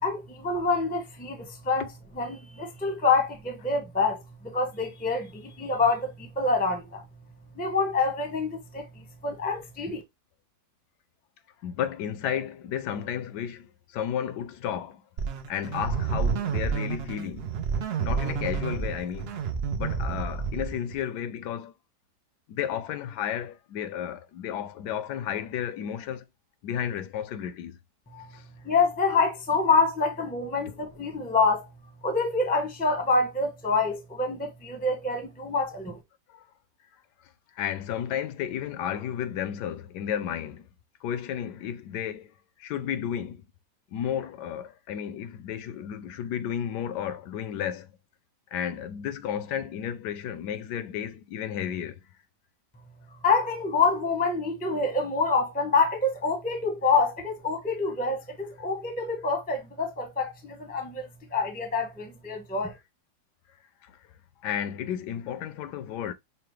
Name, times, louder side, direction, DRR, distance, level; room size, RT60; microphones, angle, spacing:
voice 1, 0.0-1.9 2.1-7.0 7.5-10.0 28.1-28.3 28.6-31.7 32.0-36.0 53.2-62.8, left 4 dB, 10° left, 0.5 m, -26 dB
voice 2, 11.6-15.0 15.5-17.6 18.0-19.4 19.7-21.7 22.5-26.2 26.6-27.8 28.3-28.4 30.7-30.8 36.3-36.5 37.6-40.7 41.0-42.3 42.6-43.4 43.9-48.0 48.5-52.0 63.8-64.0 64.4-66.1, left 9 dB, 80° left, 1.1 m, -33 dB
sound 1, 15.2-21.0, right 6 dB, 80° right, 0.5 m, -30 dB
5.7 x 2.1 x 3.1 m
omnidirectional pair, 1.8 m